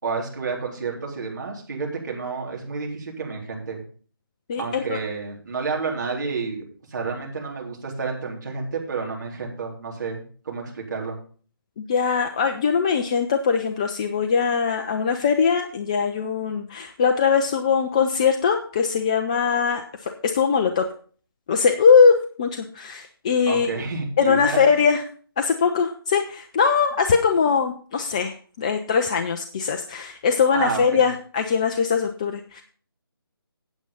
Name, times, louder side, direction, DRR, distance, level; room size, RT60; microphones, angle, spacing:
voice 1, 0.0-3.8 4.6-6.6 6.9-11.2 23.5-24.6 30.5-31.1, right 4 dB, 50° right, -1 dB, 3.8 m, -30 dB
voice 2, 4.5-5.0 11.8-20.9 21.5-23.7 24.2-25.0 25.4-32.6, left 6 dB, 15° left, 5 dB, 0.4 m, -21 dB
9.0 x 8.3 x 5.4 m, 0.43 s
figure-of-eight pair, 155°, 13 cm